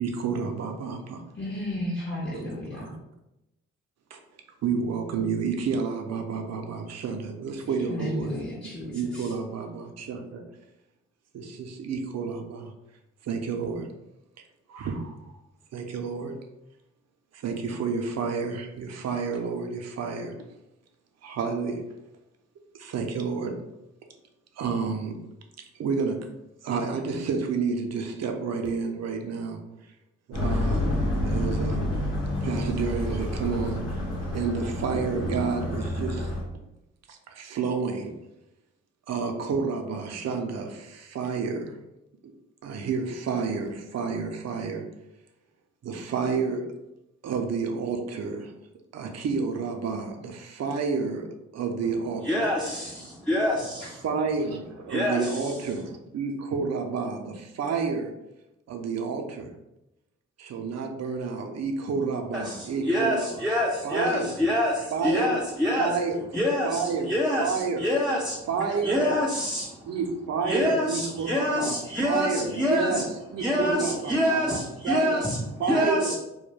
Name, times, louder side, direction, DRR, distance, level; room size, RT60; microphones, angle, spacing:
voice 1, 0.0-1.2 2.3-2.4 2.8-2.9 4.1-4.2 4.6-8.4 8.9-10.4 11.3-12.7 13.2-13.9 14.7-15.4 15.7-16.4 17.3-20.4 21.2-21.8 22.8-23.6 24.6-25.2 25.7-26.3 26.6-29.6 30.3-31.8 32.4-34.0 34.3-36.3 37.1-38.2 39.1-41.8 42.6-44.9 45.8-46.7 47.2-48.5 48.9-52.5 53.8-58.1 58.7-59.5 60.4-63.4 63.8-64.4 64.9-65.5 65.8-66.3 66.6-67.9 68.5-69.2 69.9-71.8 72.0-75.2 75.6-76.2, right 5 dB, 55° right, 4 dB, 0.6 m, -30 dB
voice 2, 1.4-2.9 7.8-9.3, left 1 dB, 30° left, -5 dB, 0.8 m, -33 dB
sound 1, 30.3-36.4, left 1 dB, 85° left, 0.9 m, -28 dB
voice 3, 52.2-54.0 54.9-55.4 62.3-65.9 66.3-68.4 68.8-69.9 70.5-73.0 73.4-76.2, left 1 dB, ahead, -4 dB, 0.5 m, -26 dB
2.2 x 2.2 x 3.2 m, 0.91 s
hypercardioid pair, 40°, 32 cm